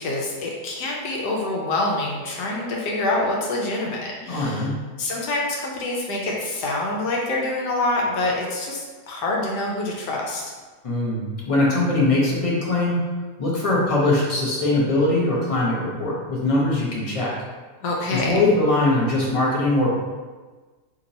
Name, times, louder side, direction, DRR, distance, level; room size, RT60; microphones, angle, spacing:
voice 1, 0.0-4.7 5.0-10.4 17.8-18.3, left 2 dB, 85° left, -2 dB, 1.2 m, -26 dB
voice 2, 4.3-4.8 10.8-13.0 13.4-17.3 18.1-19.9, left 2 dB, 35° left, -5 dB, 0.5 m, -21 dB
2.9 x 2.8 x 3.9 m, 1.3 s
omnidirectional pair, 1.7 m